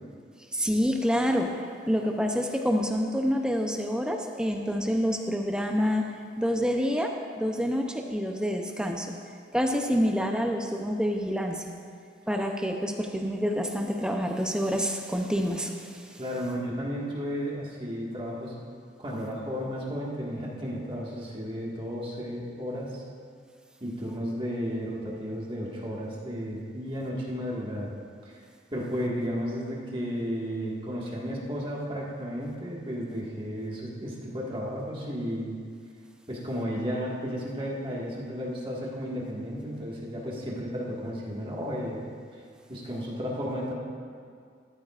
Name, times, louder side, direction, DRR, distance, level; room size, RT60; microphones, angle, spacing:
voice 1, 0.5-1.6 1.9-6.1 6.4-9.1 9.5-11.6 12.3-16.2, equal, 5° right, 3 dB, 0.6 m, -27 dB
voice 2, 16.2-18.6 19.0-23.0 23.8-27.9 28.3-28.4 28.7-35.6 36.3-42.0 42.7-43.7, equal, 30° right, -5 dB, 1.7 m, -33 dB
14.0 x 13.5 x 2.5 m, 2.2 s
head